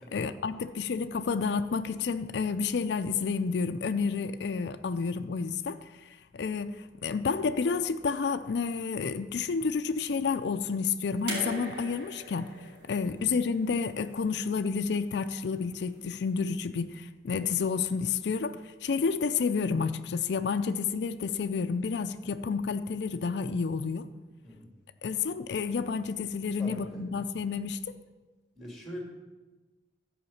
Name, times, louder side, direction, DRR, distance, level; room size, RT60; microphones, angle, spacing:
voice 1, 0.0-12.5 12.8-24.1 25.0-27.8, left 5 dB, 75° left, 10 dB, 0.4 m, -30 dB
sound 1, 11.3-14.4 15.6-15.7, right 1 dB, 85° right, 3.6 m, -40 dB
voice 2, 26.6-27.0 28.6-29.0, equal, ahead, -1 dB, 2.2 m, -42 dB
12.5 x 5.1 x 7.1 m, 1.2 s
head